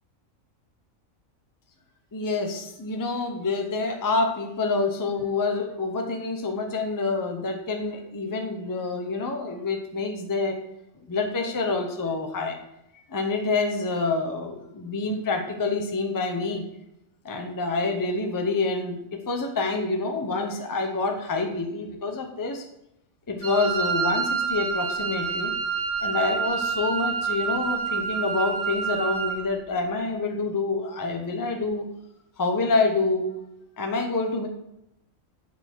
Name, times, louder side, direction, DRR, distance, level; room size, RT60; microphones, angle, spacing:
voice 1, 2.1-10.6 11.1-12.6 13.1-16.6 17.2-22.6 23.3-25.5 26.0-31.9 32.4-33.3 33.8-34.5, left 3 dB, 20° left, 4 dB, 0.6 m, -27 dB
Wind instrument woodwind instrument, 23.4-29.4, right 6 dB, 10° right, 1.1 m, -28 dB
7.6 x 4.3 x 4.5 m, 0.84 s
omnidirectional pair, 1.4 m